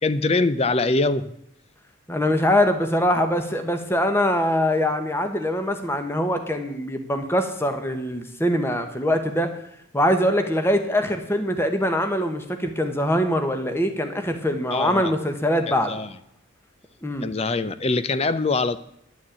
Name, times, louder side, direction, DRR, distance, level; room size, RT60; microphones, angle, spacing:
voice 1, 0.0-1.3 14.7-15.1 15.7-16.1 17.2-18.8, left 3 dB, 30° left, 14 dB, 0.5 m, -23 dB
voice 2, 2.1-9.5 9.9-15.9 17.0-17.3, equal, 10° left, 7 dB, 1.1 m, -23 dB
11.0 x 6.3 x 8.8 m, 0.76 s
head